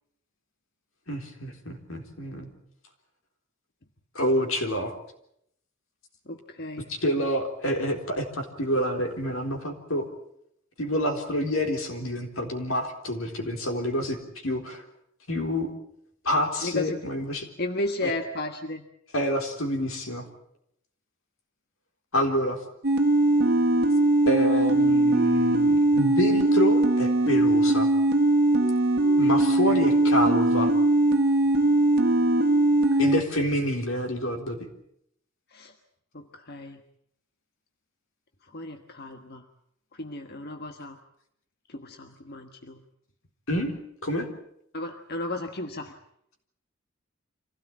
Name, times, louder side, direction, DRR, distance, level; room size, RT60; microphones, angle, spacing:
voice 1, 1.1-2.5 4.1-4.9 6.9-10.1 10.8-14.2 14.4-14.8 15.3-15.7 16.2-17.5 18.0-18.1 19.1-20.3 22.1-22.6 24.3-27.9 29.2-30.7 33.0-34.6 43.5-43.7 44.0-44.3, equal, 80° left, 4 dB, 4.0 m, -27 dB
voice 2, 6.3-6.9 16.6-17.0 17.6-18.8 29.7-29.8 32.9-33.3 35.5-35.7 36.1-36.8 38.4-39.4 39.9-41.0 41.7-42.8 44.7-45.9, left 2 dB, 50° left, 5 dB, 1.4 m, -34 dB
sound 1, 22.8-33.2, right 2 dB, 50° right, 1.7 m, -21 dB
25.5 x 16.5 x 8.7 m, 0.74 s
head